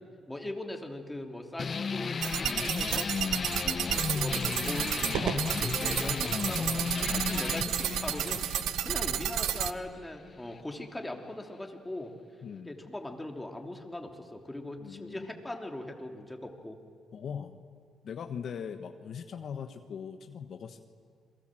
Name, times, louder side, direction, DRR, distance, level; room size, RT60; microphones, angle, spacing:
voice 1, 0.3-3.1 3.6-12.1 12.6-16.8, left 1 dB, 10° left, 3 dB, 3.1 m, -40 dB
sound 1, 1.6-10.6, left 5 dB, 40° left, 0.6 m, -34 dB
sound 2, 2.2-9.7, right 11 dB, 85° right, 0.8 m, -31 dB
voice 2, 12.4-12.8 14.8-15.3 17.1-17.6 18.0-20.8, left 7 dB, 60° left, 7 dB, 1.2 m, -40 dB
28.5 x 22.5 x 7.7 m, 2.1 s
cardioid pair, 90°, 0 cm